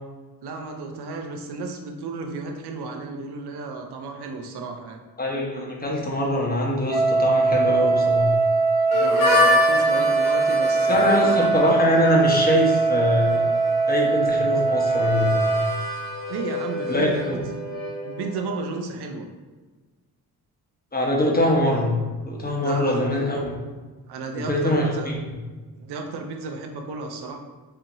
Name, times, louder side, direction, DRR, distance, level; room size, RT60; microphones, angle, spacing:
voice 1, 0.4-5.0 8.9-11.4 16.3-17.4 18.0-19.3 22.6-23.0 24.1-25.1 25.8-27.4, right 3 dB, 80° right, 3 dB, 0.7 m, -33 dB
voice 2, 5.2-8.3 10.9-13.4 13.9-15.4 16.9-17.4 20.9-22.0 22.2-23.6 24.4-25.2, left 1 dB, 25° left, -2 dB, 1.1 m, -23 dB
Wind instrument woodwind instrument, 6.9-15.8, right 4 dB, 25° right, 0.6 m, -21 dB
Harmonica, 8.9-18.5, left 2 dB, 85° left, 1.1 m, -28 dB
4.5 x 2.7 x 2.6 m, 1.3 s
cardioid pair, 65°, 38 cm